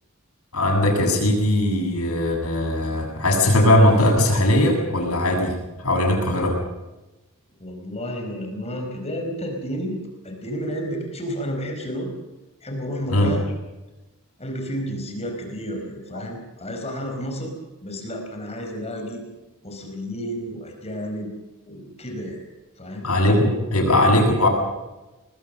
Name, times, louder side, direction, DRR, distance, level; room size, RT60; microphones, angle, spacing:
voice 1, 0.5-6.6 13.1-13.3 16.1-16.2 23.0-24.5, left 1 dB, 80° left, 1 dB, 7.9 m, -19 dB
voice 2, 7.6-10.0 10.2-12.1 12.6-13.5 14.4-17.5 17.8-19.2 19.6-21.3 21.7-22.4 22.8-23.1, equal, 30° left, 3 dB, 4.8 m, -31 dB
25.5 x 20.5 x 6.6 m, 1.1 s
head